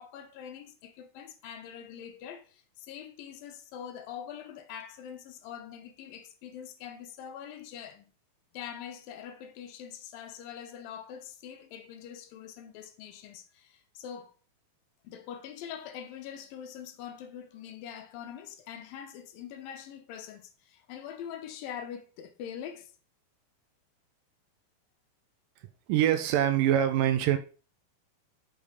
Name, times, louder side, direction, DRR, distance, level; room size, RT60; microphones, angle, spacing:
voice 1, 0.0-8.1 8.5-14.3 15.0-22.9, left 9 dB, 85° left, 2.6 m, -43 dB
voice 2, 25.9-27.4, right 11 dB, 80° right, 2.2 m, -24 dB
6.6 x 5.3 x 5.2 m
omnidirectional pair, 4.1 m